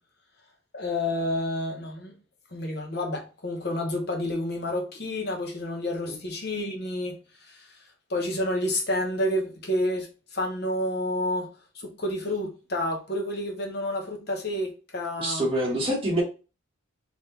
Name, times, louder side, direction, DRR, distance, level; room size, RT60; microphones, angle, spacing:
voice 1, 0.7-2.1 2.5-7.7 8.1-11.5 11.7-15.5, left 1 dB, 50° left, 0.9 m, -29 dB
voice 2, 15.2-16.2, right 1 dB, 25° right, 1.5 m, -25 dB
3.8 x 3.0 x 3.9 m
head